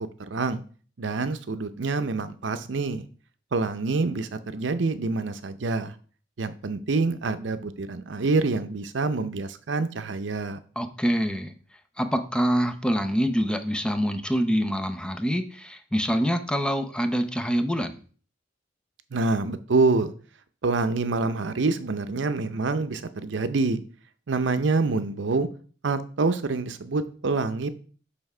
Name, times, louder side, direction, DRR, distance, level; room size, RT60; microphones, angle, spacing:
voice 1, 0.3-0.6 1.0-3.1 3.5-5.9 6.4-10.6 19.1-20.1 20.6-23.8 24.3-25.5 25.8-27.7, right 3 dB, 75° right, 0.6 m, -26 dB
voice 2, 10.8-11.5 12.0-18.0, equal, 5° left, 0.6 m, -25 dB
7.0 x 3.5 x 5.4 m
head